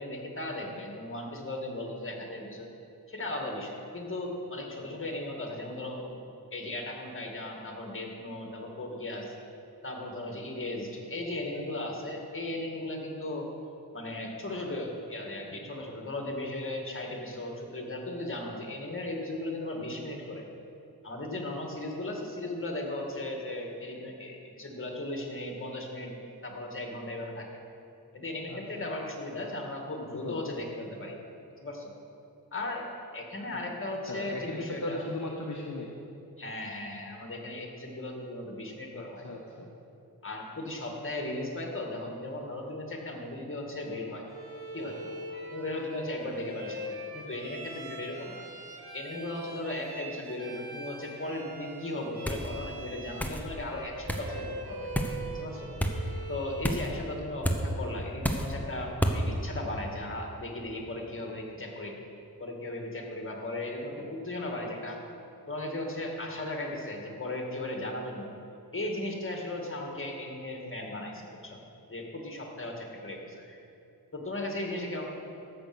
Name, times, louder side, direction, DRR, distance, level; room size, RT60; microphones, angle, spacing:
voice 1, 0.0-2.7 3.1-6.2 6.5-9.3 9.8-13.5 13.9-20.4 21.0-26.1 26.4-27.5 28.1-31.1 31.6-31.9 32.5-32.9 33.1-35.0 36.4-39.3 40.2-44.2 44.7-45.1 45.5-48.4 48.9-54.9 55.3-61.9 62.4-65.0 65.5-68.3 68.7-71.6 71.9-73.6 74.1-75.1, left 1 dB, 35° left, 1 dB, 2.1 m, -37 dB
voice 2, 28.5-28.9 30.1-30.5 34.1-35.9 38.9-39.7, left 2 dB, 50° left, -1 dB, 1.2 m, -37 dB
Bowed string instrument, 44.3-56.8, right 1 dB, 90° right, 1.7 m, -43 dB
sound 1, 52.3-52.5 53.2-53.4 54.1-54.3 54.9-55.2 55.8-56.0 56.6-56.9 57.4-57.6 58.2-58.5 59.0-59.2, equal, 5° left, 1.0 m, -29 dB
13.5 x 8.3 x 6.2 m, 2.8 s
wide cardioid pair, 105°, 37 cm